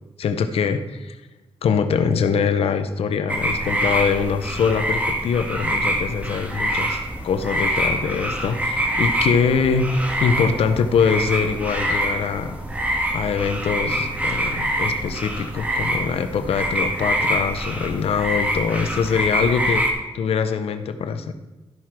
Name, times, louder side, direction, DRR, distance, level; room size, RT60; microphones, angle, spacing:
voice 1, 0.2-1.2 1.6-12.6 13.1-19.9 20.1-21.3, left 6 dB, 90° left, 10 dB, 0.7 m, -23 dB
sound 1, 3.3-19.9, right 1 dB, 15° right, 1.5 m, -25 dB
12.5 x 5.9 x 4.7 m, 1.1 s
wide cardioid pair, 105°, 10 cm